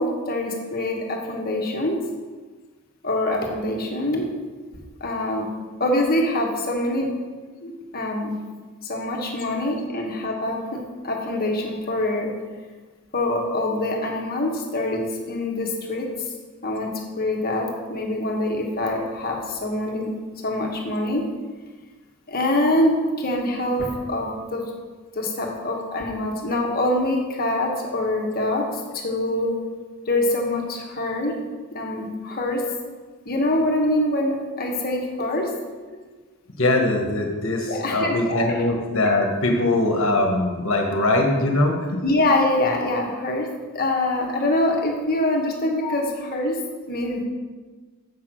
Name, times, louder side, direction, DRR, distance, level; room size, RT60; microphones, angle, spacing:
voice 1, 0.0-2.0 3.0-4.3 5.0-5.5 5.8-7.1 7.6-8.4 8.8-12.3 13.1-16.1 16.6-20.1 20.4-21.3 22.3-24.6 25.1-29.5 30.0-31.4 31.7-32.6 33.2-35.5 37.7-38.2 42.0-43.5 43.7-46.6 46.9-47.2, left 1 dB, 45° left, 0 dB, 1.5 m, -24 dB
voice 2, 36.6-42.0 45.8-45.9, left 2 dB, 60° left, 2 dB, 1.5 m, -21 dB
7.4 x 6.0 x 6.1 m, 1.4 s
head